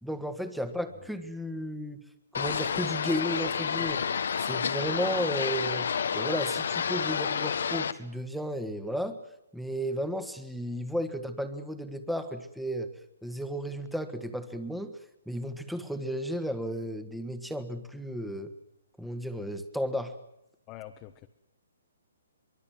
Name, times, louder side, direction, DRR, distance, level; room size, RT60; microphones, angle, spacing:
voice 1, 0.0-2.0 2.3-4.0 4.4-5.9 6.1-9.2 9.5-12.9 13.2-14.9 15.2-18.5 19.0-20.1, equal, ahead, 9 dB, 1.7 m, -33 dB
sound 1, 2.3-7.9, left 7 dB, 70° left, 1.4 m, -30 dB
voice 2, 20.7-21.3, left 13 dB, 25° left, 5 dB, 1.2 m, -45 dB
24.0 x 23.5 x 7.7 m, 0.84 s
hypercardioid pair, 155°, 0 cm